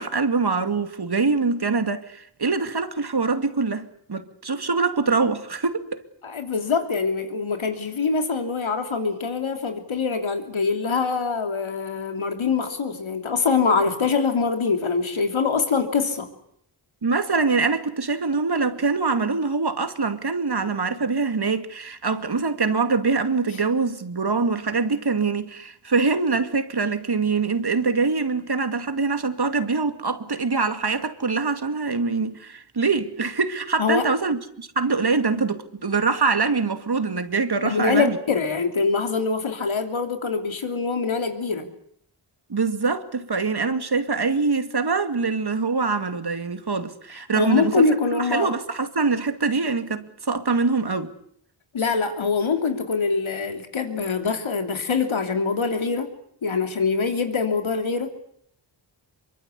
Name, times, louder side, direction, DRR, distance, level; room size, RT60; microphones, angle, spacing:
voice 1, 0.0-6.0 17.0-38.2 42.5-47.8 48.1-51.1, right 4 dB, 55° right, 2.5 m, -24 dB
voice 2, 6.2-16.3 33.8-34.0 37.6-41.7 47.3-48.5 51.7-56.1 56.4-58.1, left 5 dB, 85° left, 3.2 m, -24 dB
24.5 x 23.5 x 8.4 m
cardioid pair, 45°, 46 cm